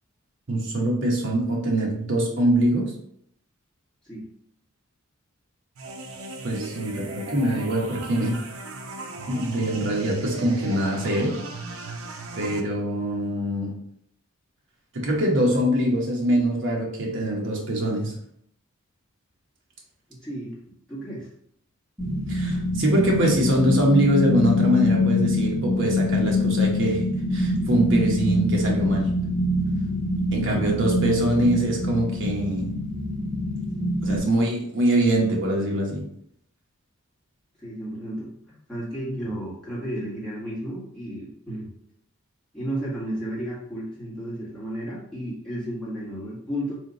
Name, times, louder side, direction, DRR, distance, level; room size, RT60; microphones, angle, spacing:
voice 1, 0.5-2.9 6.4-8.3 9.3-11.4 12.4-13.7 14.9-18.1 22.3-27.0 27.3-29.1 30.3-32.7 34.0-36.0, right 1 dB, 55° right, -1 dB, 1.0 m, -23 dB
sound 1, 5.8-12.6, right 2 dB, 70° right, 0.5 m, -37 dB
voice 2, 20.1-20.5 20.9-21.3 30.4-30.8 37.6-41.7 42.5-46.7, right 1 dB, 5° left, -8 dB, 1.5 m, -33 dB
sound 2, 22.0-34.2, left 1 dB, 15° right, 1.3 m, -24 dB
3.5 x 2.8 x 3.9 m, 0.69 s
head